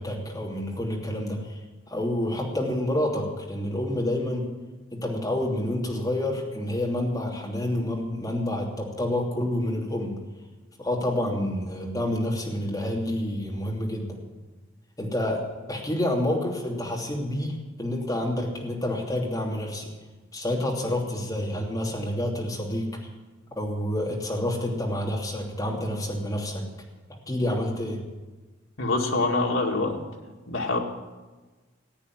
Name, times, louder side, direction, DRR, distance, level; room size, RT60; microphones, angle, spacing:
voice 1, 0.0-1.6 1.9-4.5 4.9-10.2 10.8-14.2 15.0-15.4 15.7-19.9 20.3-22.9 23.6-26.6 27.3-28.0, left 1 dB, 20° left, -1 dB, 2.9 m, -28 dB
voice 2, 28.8-30.0 30.5-30.8, left 2 dB, 80° left, 0 dB, 2.3 m, -25 dB
15.5 x 8.8 x 9.4 m, 1.3 s
head